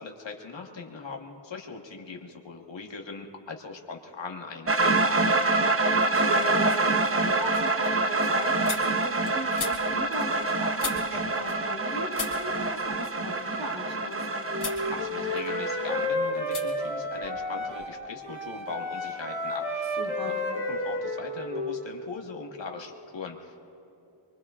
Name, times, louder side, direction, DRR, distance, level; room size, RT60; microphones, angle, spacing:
voice 1, 0.0-5.3 14.9-19.9 20.2-20.3 20.7-23.6, left 4 dB, 60° left, 1 dB, 1.6 m, -40 dB
sound 1, 4.7-16.1, right 2 dB, 25° right, 0.7 m, -26 dB
voice 2, 5.8-14.2 20.0-20.4, right 1 dB, 55° right, -1 dB, 3.8 m, -37 dB
sound 2, 6.3-6.4 6.8-11.9 12.1-14.2 14.5-14.9 15.2-15.9 16.5-16.7 16.9-18.0, left 5 dB, 80° left, 2.6 m, -40 dB
Wind instrument woodwind instrument, 14.5-18.0 18.2-21.8, left 1 dB, 75° right, 4.0 m, -31 dB
24.5 x 23.5 x 2.5 m, 2.9 s
wide cardioid pair, 105°, 50 cm